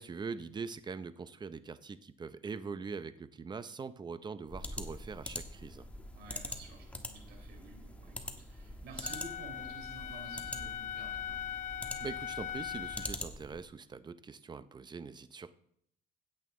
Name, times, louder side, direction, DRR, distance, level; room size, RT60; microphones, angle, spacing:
voice 1, 0.0-5.9 12.0-15.5, right 5 dB, 25° right, 13 dB, 0.7 m, -43 dB
sound 1, 4.5-13.6, left 1 dB, 10° left, 1.3 m, -44 dB
voice 2, 6.1-11.5, right 3 dB, 75° right, 2 dB, 4.4 m, -51 dB
Wind instrument woodwind instrument, 9.0-13.2, left 10 dB, 45° left, 0.7 m, -40 dB
16.0 x 8.3 x 3.8 m, 0.68 s
cardioid pair, 110°, 17 cm